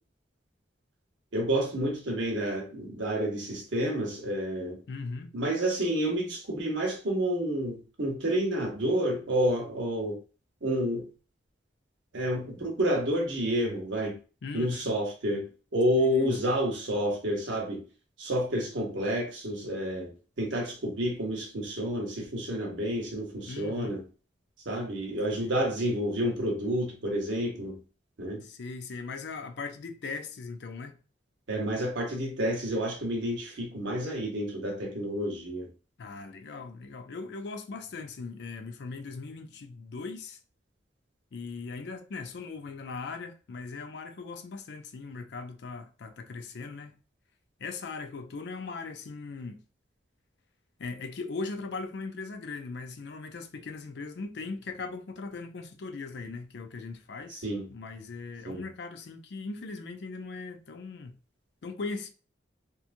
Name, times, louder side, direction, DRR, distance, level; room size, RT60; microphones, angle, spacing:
voice 1, 1.3-4.8 5.3-10.2 10.6-11.1 12.1-14.2 14.5-17.9 18.2-24.0 24.6-27.8 28.2-28.4 31.5-35.7 57.3-57.7 58.4-58.6, equal, 80° right, 0.9 m, -29 dB
voice 2, 4.9-5.3 14.4-14.9 16.0-16.6 23.5-23.9 25.4-25.6 28.4-31.0 36.0-40.4 41.3-46.9 47.6-49.6 50.8-57.4 57.7-61.1 61.6-62.1, left 4 dB, 60° left, 0.4 m, -39 dB
2.8 x 2.3 x 2.5 m
head